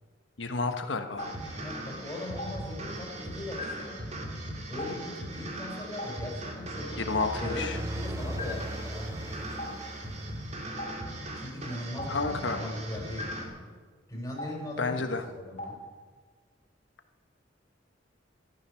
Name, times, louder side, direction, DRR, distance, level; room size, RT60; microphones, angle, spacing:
voice 1, 0.4-1.3 7.0-7.8 12.1-12.6 14.8-15.2, left 3 dB, 75° left, 7 dB, 1.3 m, -30 dB
Stream, 1.2-1.3 2.4-2.5 3.6-3.7 4.8-4.9 6.0-6.1 7.2-7.3 8.4-8.5 9.6-9.7 10.8-10.9 12.0-12.1 13.2-13.3 14.4-14.5 15.6-15.7, left 2 dB, 40° left, 3.1 m, -35 dB
sound 1, 1.2-13.5, right 1 dB, 40° right, 2.4 m, -39 dB
voice 2, 1.6-4.0 4.7-9.6 11.3-13.7 14.1-15.8, left 1 dB, 15° left, -2 dB, 4.6 m, -39 dB
sound 2, 6.4-11.1, right 1 dB, 15° right, 0.5 m, -39 dB
13.5 x 13.0 x 6.4 m, 1.5 s
head